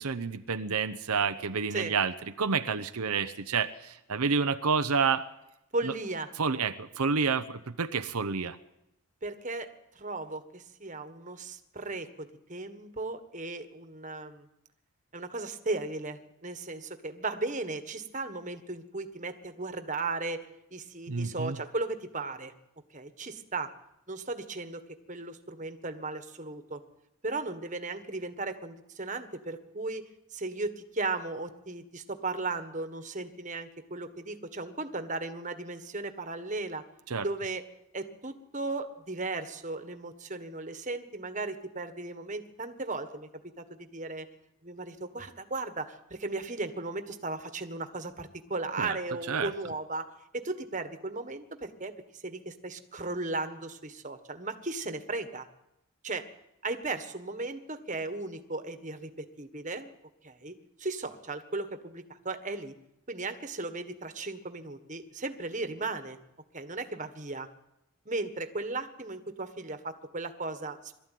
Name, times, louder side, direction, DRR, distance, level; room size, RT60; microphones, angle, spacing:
voice 1, 0.0-5.3 5.8-5.9 6.4-8.6 21.1-21.6 37.1-37.3 48.8-49.0 49.3-49.5, right 5 dB, 85° right, 9 dB, 0.8 m, -29 dB
voice 2, 5.7-6.3 9.2-9.7 9.9-14.5 15.1-22.5 22.9-23.7 24.1-24.8 25.1-26.8 27.2-30.0 30.3-36.8 37.2-37.6 37.9-43.3 43.6-44.3 44.6-50.1 50.3-55.5 56.0-56.2 56.6-59.9 60.2-60.5 60.8-62.7 63.1-66.2 66.5-67.5 68.0-71.0, right 3 dB, 35° right, 8 dB, 1.5 m, -36 dB
22.5 x 13.5 x 9.3 m, 0.87 s
head